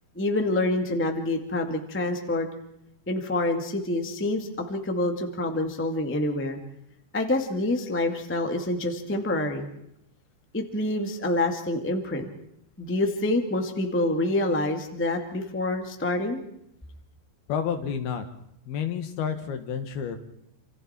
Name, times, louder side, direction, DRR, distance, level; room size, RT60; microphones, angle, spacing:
voice 1, 0.1-2.5 3.1-6.6 7.1-9.7 10.5-12.3 12.8-16.4, left 2 dB, 10° left, 4 dB, 0.8 m, -27 dB
voice 2, 17.5-18.3 18.7-20.2, left 7 dB, 75° left, 7 dB, 3.4 m, -30 dB
28.0 x 28.0 x 4.4 m, 0.77 s
omnidirectional pair, 4.6 m